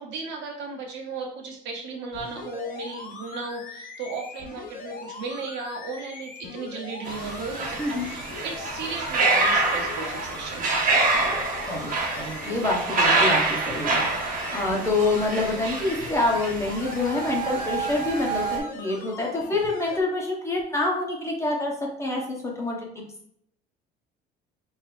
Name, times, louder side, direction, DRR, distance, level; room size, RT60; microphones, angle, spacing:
voice 1, 0.0-10.8, right 3 dB, 70° right, 0 dB, 1.2 m, -35 dB
sound 1, 2.1-20.0 20.6-20.7, left 4 dB, 50° left, 0.8 m, -41 dB
sound 2, 7.1-18.6, right 3 dB, 45° right, 1.3 m, -26 dB
voice 2, 11.7-14.0 14.5-21.7 22.0-23.0, left 2 dB, 15° left, -2 dB, 1.1 m, -26 dB
4.5 x 2.8 x 3.4 m, 0.68 s
cardioid pair, 115°, 19 cm